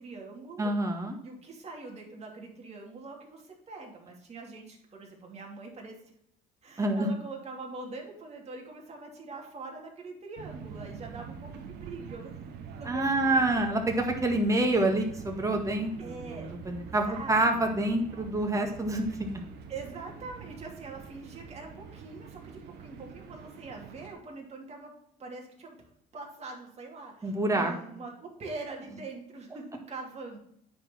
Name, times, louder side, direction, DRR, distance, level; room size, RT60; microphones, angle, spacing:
voice 1, 0.0-0.7 1.2-6.0 6.6-12.3 12.7-13.8 16.0-16.6 17.0-17.7 19.7-24.9 25.2-30.4, right 3 dB, 40° right, 0 dB, 2.8 m, -43 dB
voice 2, 0.6-1.2 6.8-7.1 12.9-19.3 27.2-27.7, right 2 dB, 20° right, 3 dB, 1.9 m, -27 dB
sound 1, 10.4-24.1, right 7 dB, 80° right, 1.2 m, -45 dB
9.7 x 4.5 x 5.9 m, 0.72 s
cardioid pair, 110°, 17 cm